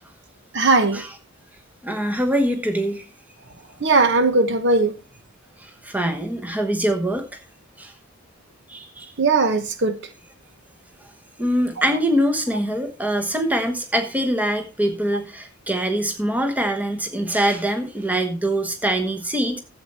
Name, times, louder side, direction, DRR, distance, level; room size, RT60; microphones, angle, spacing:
voice 1, 0.5-1.0 3.8-4.9 9.2-10.0, right 3 dB, 50° right, 1.0 m, -18 dB
voice 2, 1.8-3.0 5.6-7.4 7.8-7.9 8.7-9.1 11.4-19.6, right 1 dB, 5° right, 1.1 m, -23 dB
12.0 x 8.0 x 4.2 m
head